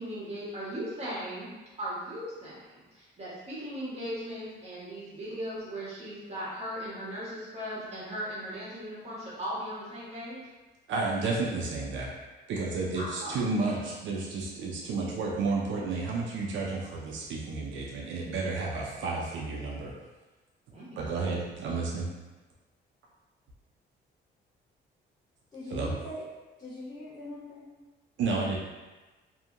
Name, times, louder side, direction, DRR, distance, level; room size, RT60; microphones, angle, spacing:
voice 1, 0.0-1.5 1.8-10.4 12.9-13.4 20.7-21.0, equal, 30° right, -8 dB, 1.3 m, -38 dB
voice 2, 10.9-12.1 12.5-19.9 21.0-22.1 25.7-25.9 28.2-28.6, right 3 dB, 70° right, -3 dB, 0.5 m, -31 dB
voice 3, 25.5-26.2 26.6-27.6, left 1 dB, 20° left, -11 dB, 1.5 m, -41 dB
2.7 x 2.6 x 2.5 m, 1.2 s
cardioid pair, 90°, 20 cm